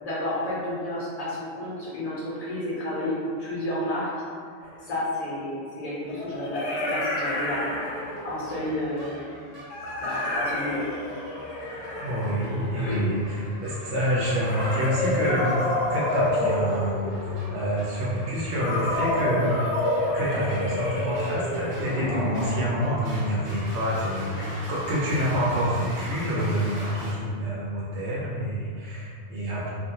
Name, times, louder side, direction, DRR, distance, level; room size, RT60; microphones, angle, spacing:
voice 1, 0.0-4.1 4.8-7.7 8.2-9.1 10.0-10.8 12.8-13.1 24.3-24.5, left 1 dB, 40° left, -8 dB, 0.8 m, -31 dB
sound 1, 4.6-4.7 6.1-8.5 9.7-13.2 14.4-17.4 18.6-22.9, left 1 dB, 75° left, 0.9 m, -29 dB
sound 2, 7.3-27.1, equal, 60° right, 0.9 m, -43 dB
voice 2, 12.0-19.6 20.1-29.7, equal, 85° right, -6 dB, 0.9 m, -27 dB
2.4 x 2.2 x 2.8 m, 2.2 s
omnidirectional pair, 1.1 m